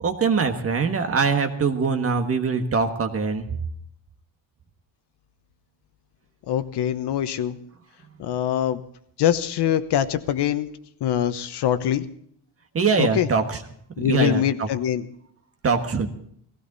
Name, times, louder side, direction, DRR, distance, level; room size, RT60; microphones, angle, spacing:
voice 1, 0.0-3.5 12.7-13.6 14.0-14.7 15.6-16.1, right 5 dB, 30° right, 7 dB, 1.5 m, -23 dB
voice 2, 6.5-7.6 8.2-8.8 9.2-10.7 11.0-12.0 13.0-13.3 14.0-15.1, left 10 dB, 60° left, 11 dB, 1.1 m, -23 dB
18.0 x 16.5 x 4.1 m, 0.66 s
cardioid pair, 175°, 46 cm